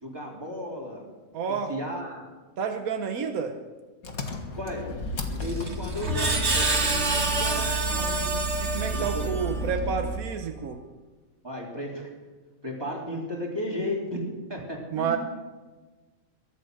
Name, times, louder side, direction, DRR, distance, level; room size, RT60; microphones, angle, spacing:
voice 1, 0.0-1.1 1.5-2.2 4.6-4.9 5.3-8.3 8.9-9.7 11.4-12.1 12.6-14.2 14.5-15.2, left 1 dB, 15° right, -2 dB, 3.6 m, -34 dB
voice 2, 1.3-1.7 2.6-3.6 8.6-10.8 14.9-15.2, right 6 dB, 80° right, 5 dB, 1.5 m, -29 dB
Engine, 4.0-10.3, right 2 dB, 90° left, 2.1 m, -32 dB
Screech, 5.4-9.7, right 2 dB, 50° right, 2.1 m, -28 dB
23.0 x 8.3 x 6.6 m, 1.3 s
omnidirectional pair, 1.5 m